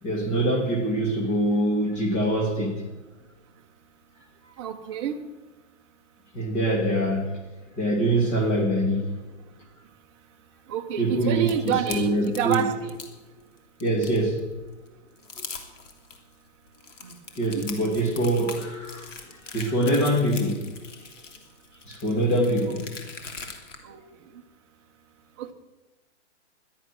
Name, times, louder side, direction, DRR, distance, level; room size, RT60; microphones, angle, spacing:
voice 1, 0.0-2.8 6.3-7.4 7.8-9.1 11.0-12.7 13.8-14.5 15.4-15.5 17.4-19.1 19.5-20.7 21.9-22.9, right 1 dB, 20° left, 2.5 m, -24 dB
voice 2, 4.6-5.2 10.7-13.0 17.0-17.1 17.4-17.6 22.6-22.7 23.8-24.0 25.4-25.5, right 10 dB, 25° right, 1.0 m, -29 dB
sound 1, 11.5-13.1 13.6-14.4 14.9-15.0 15.2-16.2 16.7-23.8, left 5 dB, 90° left, 3.1 m, -41 dB
17.0 x 12.0 x 6.2 m
hypercardioid pair, 165°, 36 cm